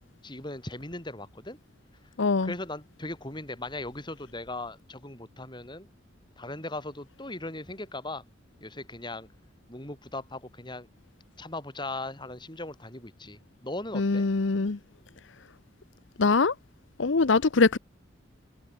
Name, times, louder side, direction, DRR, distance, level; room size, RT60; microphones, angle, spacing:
voice 1, 0.2-1.6 2.4-5.9 6.4-8.2 8.6-9.3 9.7-10.9 11.4-14.3, left 2 dB, 25° left, 6.8 m, -38 dB
voice 2, 2.2-2.5 13.9-14.8 16.2-16.5 17.0-17.8, left 4 dB, 85° left, 0.8 m, -23 dB
open air
head